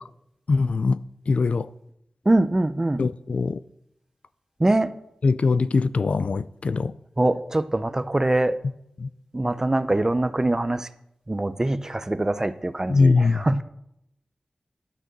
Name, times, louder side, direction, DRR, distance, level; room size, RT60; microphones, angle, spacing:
voice 1, 0.5-1.0 1.3-1.7 3.0-3.6 5.2-6.9 9.0-9.1 12.9-13.4, left 4 dB, 70° left, 0.4 m, -21 dB
voice 2, 2.3-3.1 4.6-4.9 7.2-8.6 9.3-10.9 11.3-13.6, right 2 dB, 25° right, 0.6 m, -23 dB
11.5 x 6.2 x 6.8 m
wide cardioid pair, 100°, 2 cm